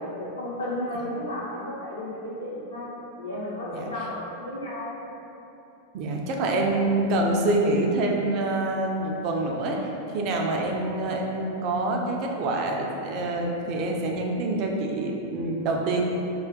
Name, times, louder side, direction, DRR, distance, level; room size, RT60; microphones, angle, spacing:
voice 1, 0.0-2.9 3.2-5.0, left 1 dB, 75° left, -7 dB, 0.7 m, -33 dB
voice 2, 3.7-4.1 5.9-16.0, right 2 dB, 40° right, 1 dB, 0.3 m, -26 dB
2.4 x 2.2 x 3.6 m, 2.9 s
figure-of-eight pair, 90°, 0 cm